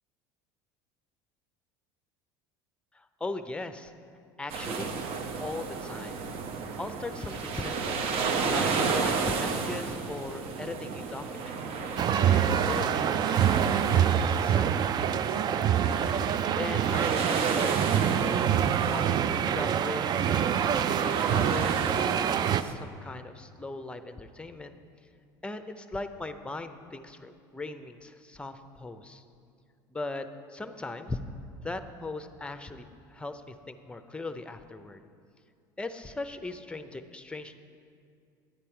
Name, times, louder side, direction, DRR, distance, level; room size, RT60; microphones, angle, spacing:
voice 1, 2.9-3.9 4.4-5.0 5.4-6.2 6.8-8.0 8.5-11.6 12.3-13.2 13.6-14.7 15.3-15.7 16.5-18.5 18.9-20.3 21.0-24.7 25.4-29.2 29.9-31.2 31.6-32.8 33.1-35.0 35.8-37.6, left 2 dB, 10° left, 9 dB, 0.6 m, -39 dB
sound 1, 4.5-22.7, right 5 dB, 60° right, 0.9 m, -33 dB
sound 2, 12.0-22.6, right 9 dB, 40° right, 0.3 m, -26 dB
10.5 x 8.4 x 4.5 m, 2.3 s
hypercardioid pair, 85°, 11 cm